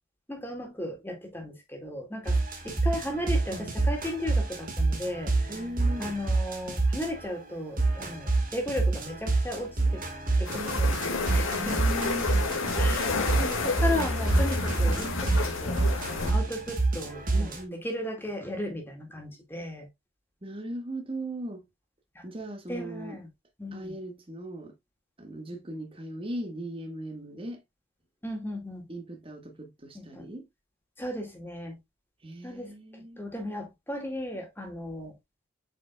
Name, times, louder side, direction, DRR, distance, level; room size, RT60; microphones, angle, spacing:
voice 1, 0.3-2.4 2.6-5.5 6.0-10.0 10.4-11.8 12.7-17.6 17.8-19.9 22.2-22.3 22.7-23.3 23.6-23.9 28.2-28.9 29.9-30.3 31.0-31.8 32.4-35.1, left 1 dB, 10° left, 2.0 m, -36 dB
sound 1, 2.3-7.3 7.8-17.6, right 3 dB, 45° right, 1.7 m, -27 dB
voice 2, 5.5-6.2 10.5-10.8 11.5-12.6 17.3-17.8 20.4-21.6 22.2-23.2 23.7-24.7 25.2-27.6 28.9-30.4 32.2-33.2, right 1 dB, 25° right, 1.6 m, -38 dB
sound 2, 10.4-16.3, left 3 dB, 90° left, 2.0 m, -29 dB
7.9 x 5.2 x 2.3 m
head